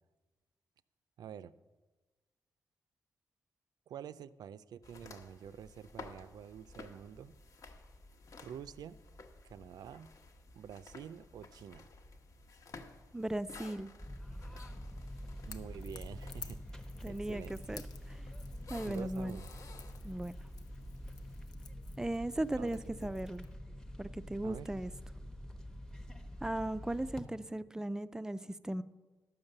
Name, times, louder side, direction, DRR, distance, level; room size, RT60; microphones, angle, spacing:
voice 1, 1.2-1.5 3.9-7.3 8.4-9.0 9.4-10.1 10.6-11.9 15.4-17.8 18.8-19.5 20.8-21.0 22.6-23.1 24.4-24.7, right 8 dB, 80° right, 15 dB, 0.4 m, -48 dB
sound 1, 4.8-21.5, left 3 dB, 55° left, 1.1 m, -55 dB
voice 2, 13.1-13.9 17.0-17.8 18.7-19.4 20.0-20.3 22.0-23.5 24.0-24.9 26.4-28.8, right 1 dB, 10° right, 14 dB, 0.4 m, -37 dB
sound 2, 14.0-27.2, equal, 10° left, 0.8 m, -46 dB
Crackle / Crack, 15.4-23.6, left 7 dB, 80° left, 0.8 m, -55 dB
12.0 x 7.2 x 6.6 m, 1.2 s
wide cardioid pair, 140°, 7 cm